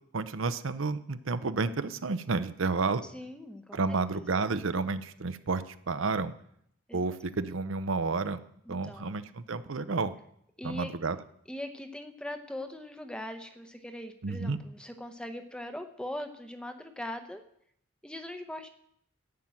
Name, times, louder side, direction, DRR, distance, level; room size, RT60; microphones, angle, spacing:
voice 1, 0.1-3.0 3.7-6.3 6.9-8.4 8.7-10.1 10.6-11.2 14.2-14.6, right 4 dB, 65° right, 12 dB, 0.7 m, -31 dB
voice 2, 3.0-4.2 6.9-7.0 8.7-9.1 10.6-10.9 11.5-17.4 18.0-18.7, left 1 dB, 5° left, 7 dB, 0.8 m, -41 dB
13.0 x 6.0 x 8.8 m, 0.73 s
head